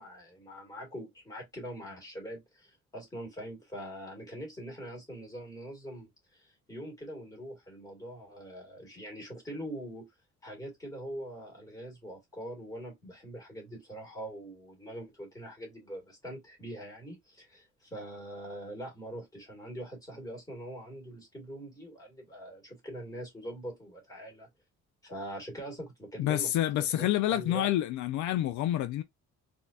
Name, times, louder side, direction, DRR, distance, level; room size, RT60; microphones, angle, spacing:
voice 1, 0.0-10.1 10.4-24.5 25.0-27.7, right 1 dB, 10° left, 2.0 m, -43 dB
voice 2, 26.2-29.0, left 13 dB, 75° left, 0.5 m, -28 dB
4.2 x 2.8 x 2.4 m
cardioid pair, 165°, 30 cm